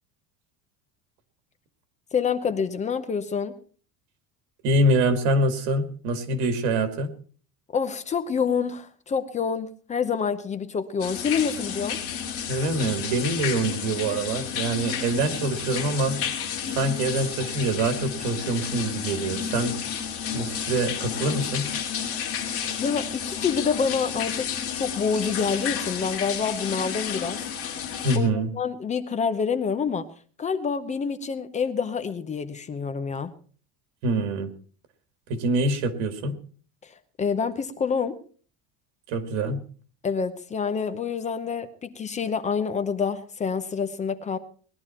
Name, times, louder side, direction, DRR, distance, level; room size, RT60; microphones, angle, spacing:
voice 1, 2.1-3.5 7.7-12.0 22.8-27.4 28.1-30.1 30.4-33.3 36.8-38.2 40.0-44.4, left 6 dB, 20° left, 11 dB, 0.8 m, -27 dB
voice 2, 4.6-7.1 12.5-16.2 16.7-19.8 20.3-21.7 28.0-28.5 34.0-34.5 35.3-36.4 39.1-39.6, right 2 dB, 85° right, 9 dB, 2.3 m, -25 dB
sound 1, 11.0-28.2, left 8 dB, 40° left, 2.8 m, -31 dB
20.0 x 11.5 x 4.4 m, 0.42 s
cardioid pair, 170°, 36 cm